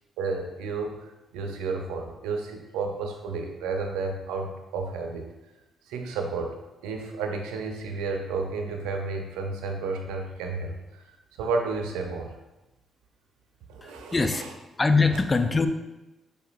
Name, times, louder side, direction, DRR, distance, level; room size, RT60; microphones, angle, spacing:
voice 1, 0.2-5.3 5.9-6.6 6.8-11.0 11.4-12.3 13.7-14.5 15.1-15.2, right 4 dB, 85° right, 3 dB, 0.5 m, -32 dB
voice 2, 13.8-14.4 14.8-15.7, left 4 dB, 30° left, 9 dB, 0.4 m, -23 dB
5.4 x 3.8 x 2.4 m, 1.0 s
supercardioid pair, 50°, 0 cm